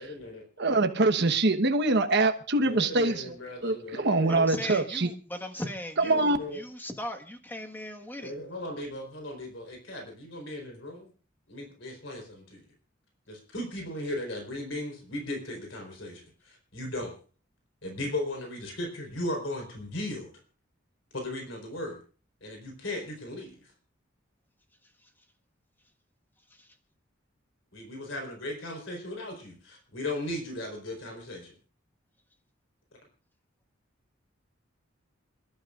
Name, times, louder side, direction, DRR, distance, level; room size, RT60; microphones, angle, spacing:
voice 1, 0.0-0.4 2.5-4.5 6.0-6.6 8.2-11.1 11.5-12.6 13.3-17.1 17.8-20.3 21.1-22.0 22.4-23.7 27.7-31.5, left 1 dB, 70° left, 4.1 m, -37 dB
voice 2, 0.6-3.4 3.6-5.1 6.0-6.4, right 2 dB, 60° right, 1.2 m, -24 dB
voice 3, 4.3-6.3 6.5-8.3 26.6-26.7, left 1 dB, 10° left, 1.5 m, -38 dB
28.5 x 12.0 x 2.5 m
head